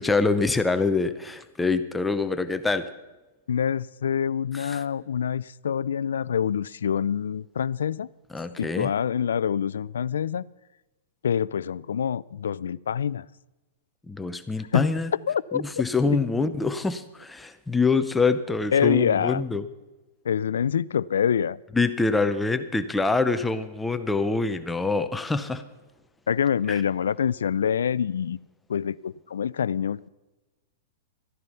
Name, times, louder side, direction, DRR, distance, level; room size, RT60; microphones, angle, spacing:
voice 1, 0.0-2.9 4.5-4.8 8.3-8.9 14.1-15.1 15.5-19.6 21.7-25.6 26.7-26.8, left 3 dB, 5° left, 10 dB, 0.7 m, -25 dB
voice 2, 3.5-8.1 8.6-10.4 11.2-13.3 14.7-14.9 15.3-15.6 16.1-16.2 18.7-19.4 20.2-21.6 26.3-28.4 28.7-30.1, left 8 dB, 90° left, 21 dB, 0.4 m, -26 dB
13.5 x 11.0 x 5.7 m, 1.1 s
hypercardioid pair, 145°, 0 cm